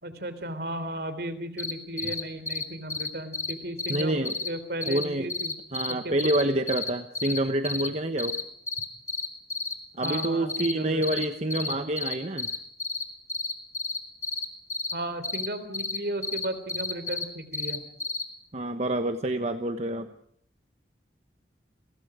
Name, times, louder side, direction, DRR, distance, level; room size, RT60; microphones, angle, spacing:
voice 1, 0.0-5.6 6.0-6.3 10.0-11.3 14.9-17.8, right 1 dB, 60° right, 12 dB, 3.4 m, -35 dB
sound 1, 1.6-1.7 2.0-2.2 2.5-2.6 2.9-3.1 3.3-3.5 3.8-4.5 4.8-5.0 5.3-5.9 6.2-7.4 7.6-7.9 8.2-8.4 8.7-9.7 10.0-10.7 11.0-11.3 11.5-13.0 13.3-14.9 15.2-15.5 15.7-16.0 16.2-17.2 17.5-18.2, left 3 dB, 15° left, 2.5 m, -31 dB
voice 2, 3.9-4.4 4.8-5.3 5.7-8.4 10.0-12.5 18.5-20.1, right 1 dB, 40° right, 8 dB, 1.1 m, -27 dB
30.0 x 23.0 x 5.0 m, 0.65 s
head